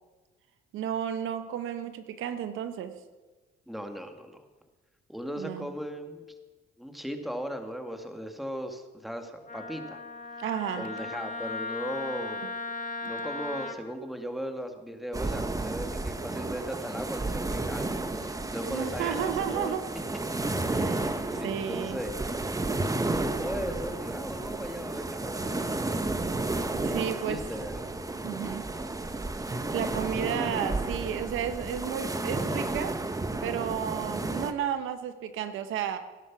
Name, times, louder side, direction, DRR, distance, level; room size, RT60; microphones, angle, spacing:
voice 1, 0.7-2.9 5.4-5.7 10.4-10.9 18.6-19.9 20.7-22.0 26.8-27.4 28.2-28.6 29.7-32.9 33.4-36.0, right 9 dB, 85° right, 9 dB, 1.2 m, -32 dB
voice 2, 3.7-4.5 5.1-6.2 6.8-10.0 10.8-12.5 13.0-19.8 21.3-22.2 23.0-25.7 27.2-27.8 28.7-29.0, equal, ahead, 5 dB, 2.0 m, -37 dB
Wind instrument woodwind instrument, 9.5-13.8, left 3 dB, 40° left, 1.7 m, -37 dB
sound 1, 15.1-34.5, right 2 dB, 15° right, 1.2 m, -32 dB
18.0 x 11.0 x 6.1 m, 1.3 s
cardioid pair, 90°, 20 cm